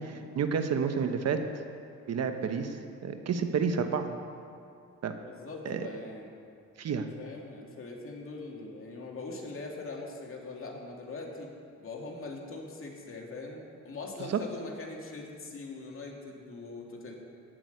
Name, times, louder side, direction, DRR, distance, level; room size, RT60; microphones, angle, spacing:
voice 1, 0.0-1.4 2.1-4.1 5.0-5.1 5.6-5.8 6.8-7.1 14.3-14.4, right 6 dB, 60° right, 7 dB, 1.1 m, -30 dB
voice 2, 5.2-6.3 6.8-11.5 11.8-17.1, left 3 dB, 45° left, -1 dB, 2.6 m, -42 dB
15.0 x 6.1 x 9.3 m, 2.4 s
cardioid pair, 90°, 30 cm